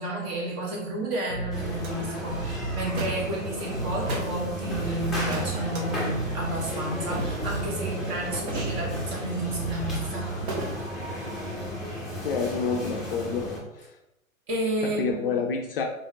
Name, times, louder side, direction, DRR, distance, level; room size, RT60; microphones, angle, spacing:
voice 1, 0.0-10.3 14.5-15.4, right 1 dB, 30° right, -2 dB, 1.3 m, -31 dB
Bass guitar, 1.3-10.8, right 4 dB, 75° right, 0.7 m, -35 dB
sound 1, 1.5-13.6, equal, ahead, 0.8 m, -34 dB
sound 2, 1.8-1.9 2.9-3.3 4.0-4.4 5.3-5.8 7.0-7.5 8.3-9.2 10.5-10.8, right 1 dB, 50° right, 1.2 m, -34 dB
voice 2, 12.2-13.5 13.8-13.9 14.8-15.8, left 5 dB, 45° left, 2 dB, 0.5 m, -28 dB
3.9 x 3.5 x 3.3 m, 0.94 s
figure-of-eight pair, 115°, 42 cm